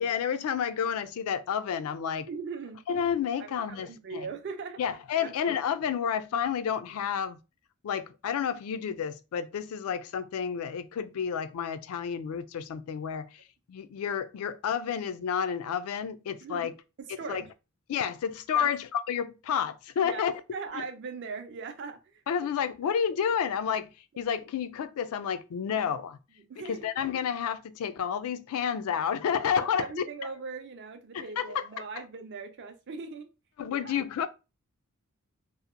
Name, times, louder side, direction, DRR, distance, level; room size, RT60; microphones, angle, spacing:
voice 1, 0.0-2.3 2.9-4.3 4.8-7.4 7.8-13.4 13.7-16.7 17.3-17.4 17.9-20.3 22.3-23.9 24.2-26.2 26.7-30.1 31.1-31.6 33.6-34.3, left 7 dB, 75° left, 0.3 m, -30 dB
voice 2, 2.3-2.8 3.4-4.8 5.2-5.6 16.4-16.7 17.0-17.5 18.5-18.7 20.0-20.2 20.5-22.2 22.8-22.9 26.5-26.8 28.6-28.7 29.6-33.3 33.7-34.1, right 4 dB, 50° right, 0.4 m, -40 dB
2.8 x 2.1 x 2.4 m
head